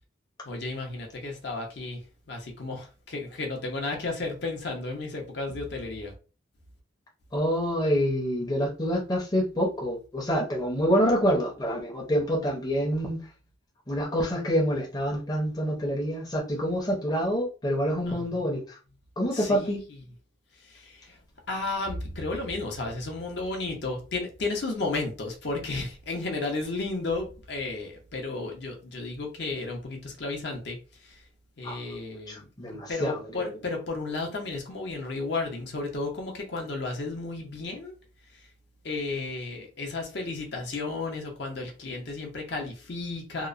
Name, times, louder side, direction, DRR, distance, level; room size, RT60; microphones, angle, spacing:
voice 1, 0.4-6.1 8.4-8.5 18.1-18.4 19.3-20.0 20.6-21.2 21.5-31.2 31.6-32.5 32.9-37.9 38.3-38.5 38.8-43.5, left 3 dB, 55° left, 0.6 m, -33 dB
voice 2, 7.3-13.2 13.9-18.8 19.2-19.8 31.6-31.8 32.3-33.6, equal, 20° left, 0.6 m, -27 dB
2.8 x 2.0 x 2.4 m
head